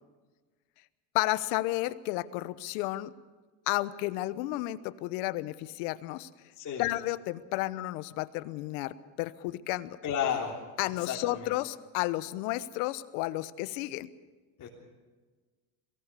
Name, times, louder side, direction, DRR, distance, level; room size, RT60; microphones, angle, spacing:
voice 1, 1.1-3.1 3.7-6.3 6.8-10.0 10.8-14.1, left 17 dB, 85° left, 14 dB, 1.1 m, -32 dB
voice 2, 6.6-6.9 10.0-10.6 11.0-11.5 14.6-14.7, left 8 dB, 40° left, -4 dB, 3.7 m, -32 dB
22.5 x 18.0 x 6.9 m, 1.3 s
cardioid pair, 140°, 43 cm